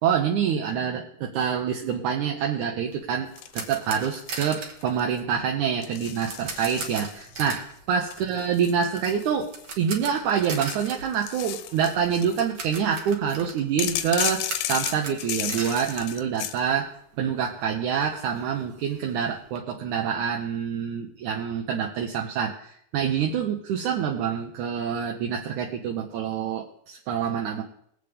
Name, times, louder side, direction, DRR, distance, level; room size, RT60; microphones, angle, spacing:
voice 1, 0.0-3.3 3.5-16.9 17.2-27.6, right 7 dB, 70° right, 1 dB, 2.1 m, -26 dB
sound 1, 2.9-16.9 17.1-17.3 17.7-17.8 18.0-19.6, right 4 dB, 50° right, 1.7 m, -39 dB
sound 2, 3.4-4.4 4.8-5.2 5.8-7.5 8.1-9.8 10.3-12.5 13.8-16.6, left 12 dB, 80° left, 2.2 m, -34 dB
21.0 x 8.3 x 3.5 m, 0.70 s
omnidirectional pair, 4.0 m